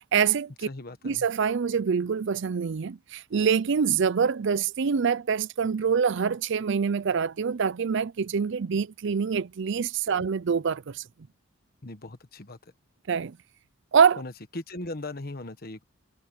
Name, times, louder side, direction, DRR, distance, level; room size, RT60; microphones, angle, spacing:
voice 1, 0.0-0.7 1.0-11.0 13.1-13.4 13.9-14.2, right 6 dB, 60° right, 0.5 m, -25 dB
voice 2, 0.7-1.3 10.1-10.2 11.8-12.6 14.2-15.8, left 2 dB, 50° left, 1.4 m, -39 dB
head